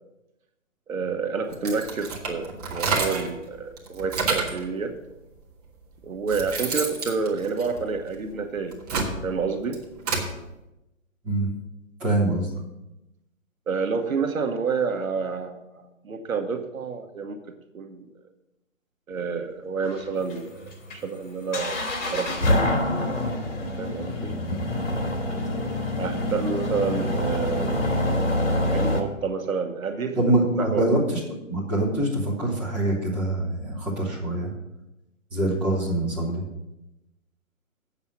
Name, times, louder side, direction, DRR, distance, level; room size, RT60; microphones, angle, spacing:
voice 1, 0.9-5.0 6.0-9.8 13.7-17.4 17.7-18.1 19.1-21.8 22.1-23.1 23.8-24.3 25.4-27.9 28.5-30.2 30.6-30.9, right 5 dB, 80° right, 6 dB, 1.2 m, -29 dB
sound 1, 1.5-3.4 3.8-4.6 5.5-5.6 6.0-8.2 8.6-10.3, right 4 dB, 30° right, 1.6 m, -29 dB
voice 2, 12.0-12.5 24.5-24.7 30.2-31.2 31.5-34.5 35.3-36.4, right 1 dB, 5° right, -7 dB, 0.8 m, -24 dB
sound 2, 19.9-29.0, left 1 dB, 65° left, 2.8 m, -26 dB
8.5 x 7.2 x 5.9 m, 0.95 s
hypercardioid pair, 165°, 40 cm